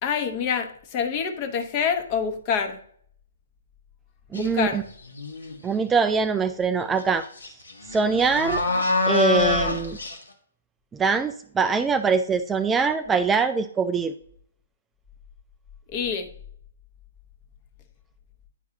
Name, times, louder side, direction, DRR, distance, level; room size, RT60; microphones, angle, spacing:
voice 1, 0.0-2.8 4.3-4.8 15.9-16.3, left 6 dB, 35° left, 7 dB, 1.0 m, -26 dB
sound 1, 4.3-4.6 5.1-5.7 7.0-7.1 7.4-10.2, left 4 dB, 80° left, 1.3 m, -25 dB
voice 2, 4.3-4.8 5.6-7.2 7.9-8.6 9.1-10.0 10.9-14.1, right 5 dB, 10° right, 9 dB, 0.3 m, -23 dB
9.8 x 4.6 x 2.7 m, 0.62 s
figure-of-eight pair, 130°, 0 cm